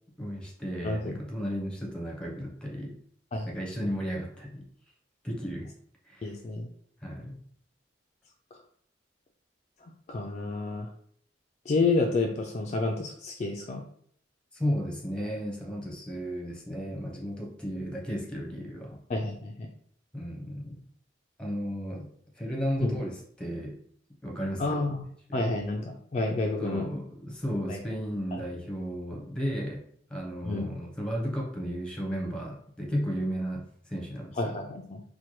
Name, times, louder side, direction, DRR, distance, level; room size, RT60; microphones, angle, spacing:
voice 1, 0.2-3.0 3.5-4.7 5.2-5.7 6.1-6.3 7.0-7.4 14.5-19.0 20.1-20.8 21.4-22.1 22.4-23.8 24.2-24.8 25.3-25.4 26.4-29.8 30.1-34.4, equal, 5° left, -1 dB, 0.8 m, -34 dB
voice 2, 0.8-1.2 3.3-3.5 6.2-6.7 8.5-8.6 9.8-10.9 11.7-13.8 19.1-19.7 22.8-23.0 24.6-25.1 25.3-26.9 27.7-27.8 28.3-28.4 30.4-30.7 34.3-35.0, left 3 dB, 35° left, 1 dB, 0.3 m, -30 dB
4.4 x 2.2 x 3.0 m, 0.62 s
head